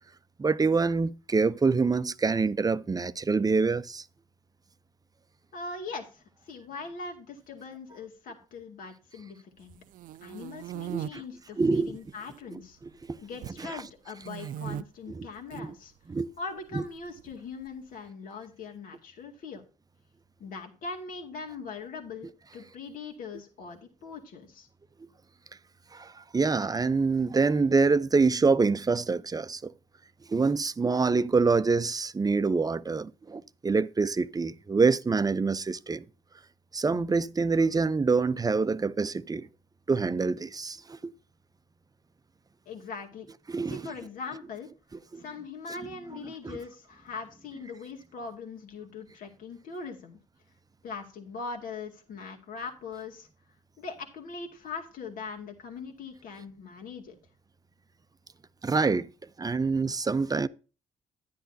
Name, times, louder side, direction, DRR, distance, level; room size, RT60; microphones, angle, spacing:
voice 1, 0.4-4.0 10.9-11.2 11.6-12.0 12.8-13.2 14.7-14.8 15.1-15.3 15.5-15.7 16.1-16.3 16.7-16.8 25.9-29.7 30.3-36.0 36.7-39.5 39.9-41.1 43.5-43.8 45.1-45.2 45.7-45.8 46.4-46.6 58.6-59.1 59.4-60.5, right 4 dB, 25° right, 0.6 m, -26 dB
voice 2, 5.5-9.8 10.2-12.8 13.2-15.9 16.4-19.6 20.4-24.7 42.7-43.3 43.7-44.7 45.2-50.2 50.8-53.3 53.8-57.1, left 4 dB, 70° left, 2.1 m, -41 dB
sound 1, 9.7-11.1 11.8-12.4 12.6-13.6 14.2-14.8 15.4-15.6 16.8-17.7, right 11 dB, 70° right, 0.4 m, -38 dB
10.5 x 10.0 x 2.7 m
supercardioid pair, 60°, 15 cm